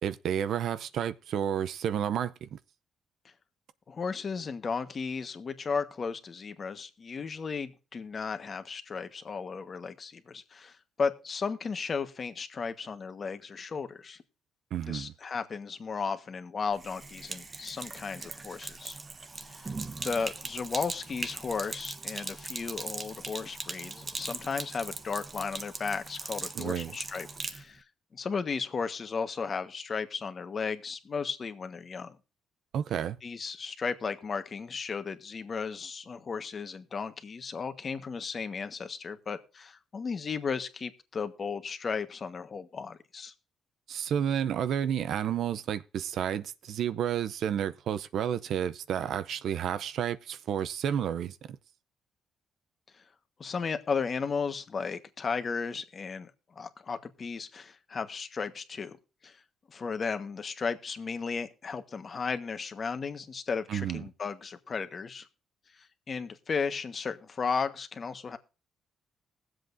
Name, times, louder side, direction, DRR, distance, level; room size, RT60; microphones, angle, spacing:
voice 1, 0.0-2.6 14.7-15.1 26.5-27.0 32.7-33.2 43.9-51.6 63.7-64.0, right 9 dB, 70° right, 0.6 m, -31 dB
voice 2, 3.9-14.2 14.8-19.0 19.4-19.7 20.0-27.8 28.1-32.2 33.2-43.3 52.9-53.0 53.4-59.0 59.2-59.4 59.7-65.3 65.7-68.4, left 5 dB, 40° left, 1.3 m, -35 dB
Sink (filling or washing), 16.7-27.6, right 3 dB, 30° right, 1.0 m, -40 dB
21.0 x 7.7 x 2.6 m
cardioid pair, 90°, 0 cm